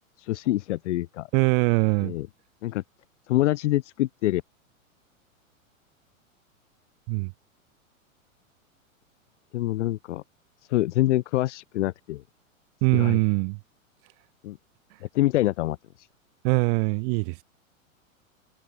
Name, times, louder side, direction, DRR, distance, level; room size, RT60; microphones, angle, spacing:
voice 1, 0.2-1.3 2.0-2.3 2.6-2.8 3.3-4.4 9.5-10.2 10.7-12.2 12.9-13.2 14.4-14.6 15.1-15.8, left 15 dB, 60° left, 3.7 m, -25 dB
voice 2, 1.3-2.1 7.1-7.3 12.8-13.6 14.9-15.0 16.4-17.4, right 36 dB, 45° right, 8.0 m, -22 dB
hypercardioid pair, 105°, 41 cm